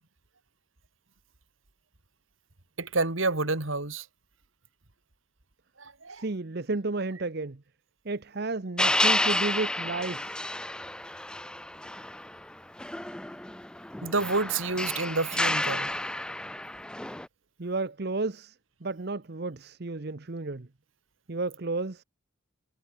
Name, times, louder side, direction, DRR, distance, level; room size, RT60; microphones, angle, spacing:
voice 1, 2.8-4.1 5.8-6.2 14.0-15.9, right 3 dB, 70° right, 2.7 m, -29 dB
voice 2, 6.1-7.6 8.0-10.5 17.6-18.6 18.8-20.7 21.3-22.0, right 3 dB, 50° right, 0.9 m, -32 dB
sound 1, 8.8-12.4 12.8-17.3, left 1 dB, 5° left, 0.4 m, -30 dB
head